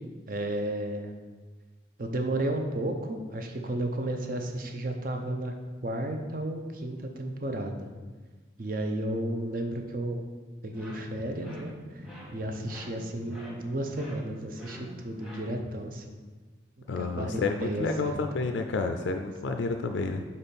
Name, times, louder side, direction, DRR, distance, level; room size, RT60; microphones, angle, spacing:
voice 1, 0.3-1.1 2.0-5.5 5.8-7.9 8.6-10.2 10.6-12.0 12.3-16.0 16.9-18.5, right 1 dB, 45° right, 4 dB, 0.6 m, -33 dB
sound 1, 10.7-15.8, equal, ahead, 1.1 m, -46 dB
voice 2, 16.9-20.2, left 3 dB, 75° left, 5 dB, 0.4 m, -30 dB
4.3 x 4.2 x 5.3 m, 1.4 s
head